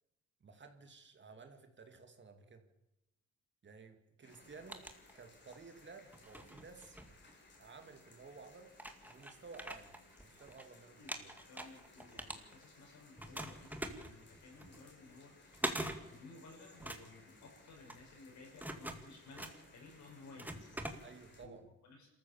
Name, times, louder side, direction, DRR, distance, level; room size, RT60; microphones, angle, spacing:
voice 1, 0.4-2.6 3.6-4.8 5.1-7.0 7.6-8.7 9.0-10.0 10.2-11.3 21.0-21.7, right 4 dB, 40° right, 6 dB, 2.4 m, -55 dB
sound 1, 4.2-21.4, left 3 dB, 40° left, 4.7 m, -63 dB
sound 2, 4.3-5.6 6.1-7.8 8.4-8.5 8.7-10.6 10.9-12.9 13.2-21.5, right 1 dB, 5° right, 2.0 m, -45 dB
voice 2, 11.5-21.0 21.4-21.5 21.8-22.1, left 3 dB, 70° left, 0 dB, 7.4 m, -57 dB
26.0 x 14.0 x 7.2 m, 0.92 s
cardioid pair, 90°, 30 cm